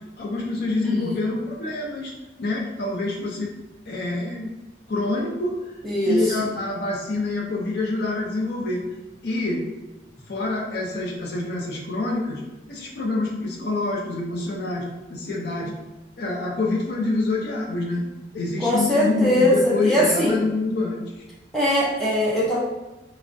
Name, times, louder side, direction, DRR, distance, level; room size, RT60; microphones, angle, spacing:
voice 1, 0.2-2.1 2.4-3.5 3.9-4.5 4.9-5.6 6.1-8.8 9.2-9.6 10.3-12.4 12.7-15.7 16.2-18.0 18.3-21.0, left 2 dB, 60° left, -2 dB, 0.4 m, -26 dB
voice 2, 5.8-6.4 18.6-20.4 21.5-22.6, left 1 dB, ahead, -8 dB, 0.5 m, -21 dB
3.3 x 2.0 x 2.5 m, 1.0 s
head